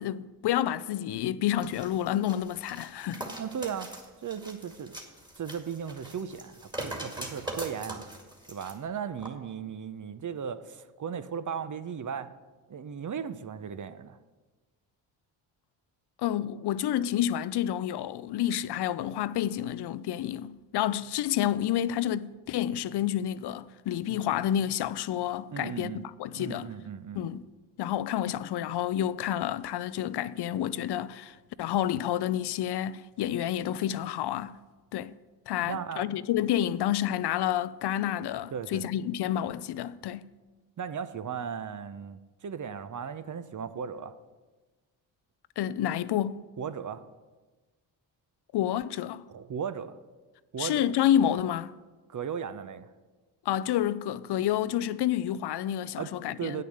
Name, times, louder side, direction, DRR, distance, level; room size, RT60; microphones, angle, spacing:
voice 1, 0.0-3.3 16.2-26.7 27.1-27.4 27.8-34.6 34.9-35.1 35.5-40.3 45.6-46.4 48.5-49.2 50.6-51.7 53.5-56.6, left 11 dB, 55° left, 0.5 m, -29 dB
sound 1, 1.6-8.7 9.2-9.3, right 1 dB, 10° right, 2.0 m, -41 dB
voice 2, 3.4-3.9 4.2-4.9 5.4-8.0 8.5-12.3 12.7-14.2 24.1-24.2 25.5-26.0 26.3-27.3 35.6-36.1 38.5-38.8 40.8-44.2 46.6-47.0 49.3-50.0 50.5-50.9 52.1-52.9 56.0-56.1 56.4-56.6, right 7 dB, 40° right, 0.7 m, -36 dB
8.6 x 6.6 x 6.5 m
supercardioid pair, 50°, 49 cm